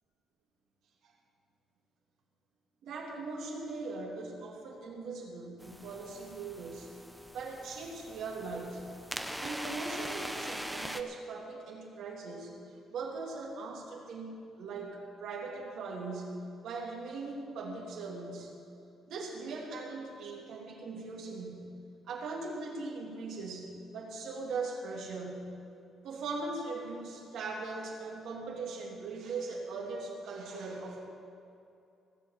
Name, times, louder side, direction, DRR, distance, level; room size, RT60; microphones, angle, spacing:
voice 1, 2.8-6.9 7.3-8.8 9.4-12.5 12.9-18.5 19.1-21.7 22.1-25.5 26.0-31.0, right 3 dB, 80° right, -2 dB, 3.0 m, -40 dB
sound 1, 5.6-11.0, equal, 5° right, 0.9 m, -42 dB
17.5 x 7.7 x 7.7 m, 2.6 s
cardioid pair, 90°, 0 cm